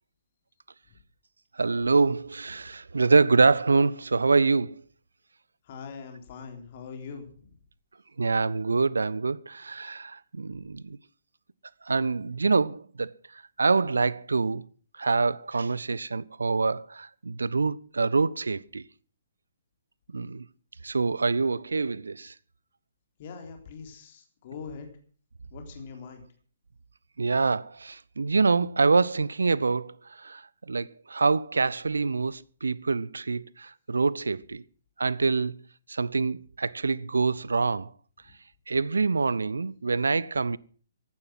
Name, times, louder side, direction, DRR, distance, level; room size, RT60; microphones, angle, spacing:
voice 1, 1.6-4.8 8.2-11.0 11.9-13.1 13.6-14.6 15.0-18.8 20.1-20.4 20.8-22.3 27.2-34.6 35.0-35.6 35.9-37.9 38.7-40.6, right 4 dB, 65° right, 0.6 m, -25 dB
voice 2, 5.7-7.4 23.2-24.9 25.5-26.2, left 5 dB, 40° left, 3.7 m, -42 dB
15.5 x 11.5 x 6.0 m
figure-of-eight pair, 130°, 0 cm